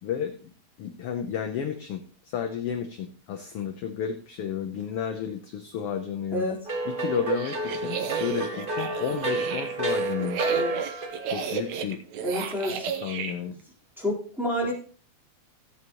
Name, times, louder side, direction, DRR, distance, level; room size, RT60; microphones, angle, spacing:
voice 1, 0.0-0.5 0.8-6.5 6.8-10.5 11.3-12.0 13.0-13.6, left 8 dB, 65° left, 5 dB, 1.5 m, -32 dB
sound 1, 6.6-11.4, right 2 dB, 30° right, 1.0 m, -30 dB
sound 2, 7.1-13.3, right 7 dB, 75° right, 2.3 m, -33 dB
voice 2, 12.2-12.9 14.0-14.7, left 1 dB, ahead, -5 dB, 3.4 m, -28 dB
15.5 x 8.4 x 2.9 m, 0.40 s
omnidirectional pair, 3.3 m